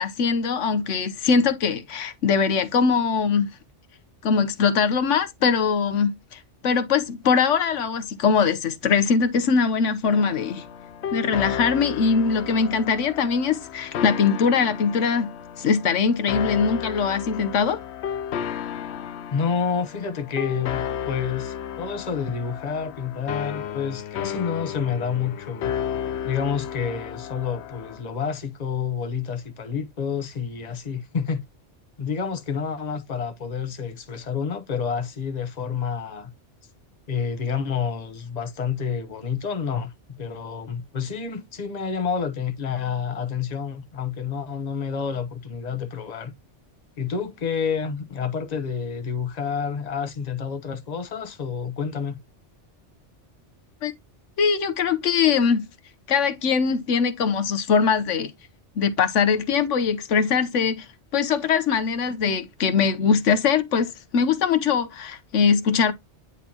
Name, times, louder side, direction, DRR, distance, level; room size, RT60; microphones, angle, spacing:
voice 1, 0.0-3.5 4.2-10.6 11.1-15.3 15.6-17.8 53.8-53.9 54.4-55.7 56.1-58.3 58.8-65.9, left 6 dB, 90° left, 1.2 m, -22 dB
sound 1, 10.0-28.0, left 9 dB, 70° left, 0.9 m, -33 dB
voice 2, 19.3-25.7 26.2-31.4 32.0-36.3 37.1-46.3 47.0-52.2, left 6 dB, 35° left, 1.1 m, -29 dB
9.7 x 4.4 x 2.8 m
omnidirectional pair, 1.2 m